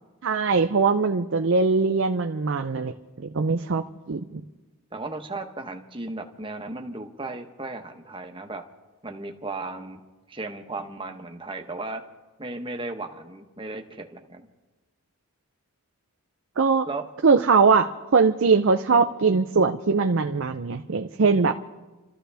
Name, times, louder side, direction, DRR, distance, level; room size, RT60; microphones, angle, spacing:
voice 1, 0.2-2.9 3.2-4.4 16.6-16.9 17.2-21.5, right 4 dB, 55° right, 6 dB, 0.5 m, -21 dB
voice 2, 4.9-8.6 9.0-10.0 10.3-12.0 12.4-14.5 16.9-17.0, right 2 dB, 20° right, 5 dB, 1.1 m, -35 dB
29.0 x 13.5 x 3.4 m, 1.2 s
head